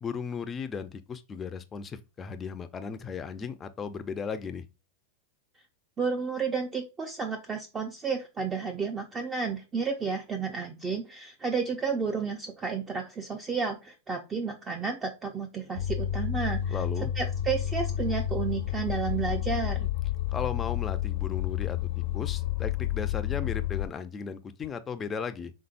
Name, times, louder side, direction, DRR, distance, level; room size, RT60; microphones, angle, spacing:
voice 1, 0.0-4.6 16.7-17.1 20.3-25.5, left 6 dB, 20° left, 0.6 m, -36 dB
voice 2, 6.0-16.8 17.2-19.9, right 5 dB, 20° right, 0.7 m, -32 dB
sound 1, 15.8-23.9, left 12 dB, 80° left, 0.6 m, -30 dB
5.5 x 3.7 x 2.6 m
supercardioid pair, 135°, 0 cm